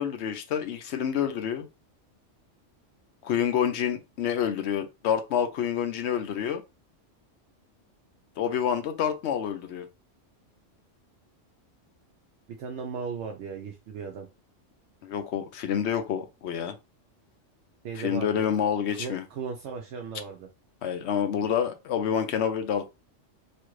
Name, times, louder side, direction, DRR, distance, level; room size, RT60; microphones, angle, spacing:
voice 1, 0.0-1.7 3.2-6.6 8.4-9.9 15.0-16.7 18.0-19.2 20.8-22.9, left 8 dB, 70° left, 0.8 m, -28 dB
voice 2, 12.6-14.3 17.8-18.5 19.0-20.5, right 6 dB, 70° right, 0.8 m, -36 dB
3.1 x 2.4 x 3.1 m
omnidirectional pair, 1.3 m